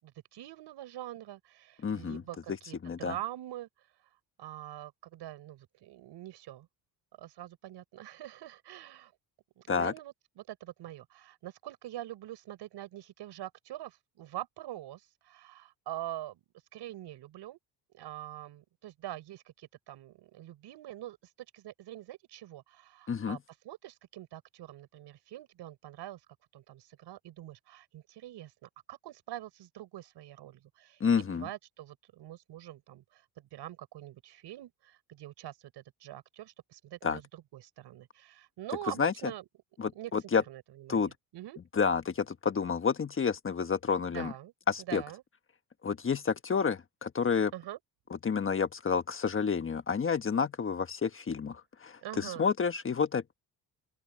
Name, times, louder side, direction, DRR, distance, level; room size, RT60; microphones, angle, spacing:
voice 1, 0.0-3.7 4.4-6.7 7.2-9.1 9.6-16.4 16.7-17.6 17.9-23.4 23.6-26.2 26.5-39.5 39.9-40.1 40.5-41.6 44.1-44.5 44.8-45.2 47.5-47.8 52.0-52.5, right 13 dB, 70° right, 5.2 m, -44 dB
voice 2, 1.8-2.2 2.8-3.1 9.7-9.9 23.1-23.4 31.0-31.5 37.0-37.2 39.0-39.1 39.8-40.4 40.9-41.1 41.7-44.3 44.7-45.0 45.8-47.5 48.2-53.3, left 6 dB, 30° left, 1.3 m, -29 dB
open air
cardioid pair, 100°, 42 cm